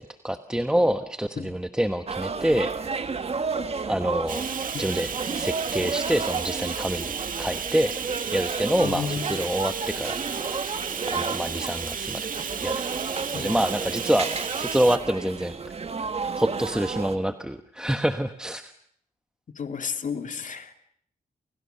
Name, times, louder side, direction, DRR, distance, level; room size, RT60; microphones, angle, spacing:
voice 1, 0.0-2.7 3.9-4.4 4.8-5.1 5.3-7.9 8.3-10.2 11.1-12.3 12.6-12.8 13.3-14.3 14.6-15.6 16.4-18.7, equal, 5° right, 8 dB, 1.1 m, -26 dB
sound 1, 2.1-17.2, right 5 dB, 40° right, 1.7 m, -32 dB
Bathtub (filling or washing), 4.3-15.0, right 7 dB, 65° right, 1.8 m, -34 dB
voice 2, 8.8-9.4 13.3-13.5 19.6-20.7, left 6 dB, 55° left, 7 dB, 2.5 m, -32 dB
29.5 x 29.0 x 6.8 m, 0.67 s
wide cardioid pair, 135°, 15 cm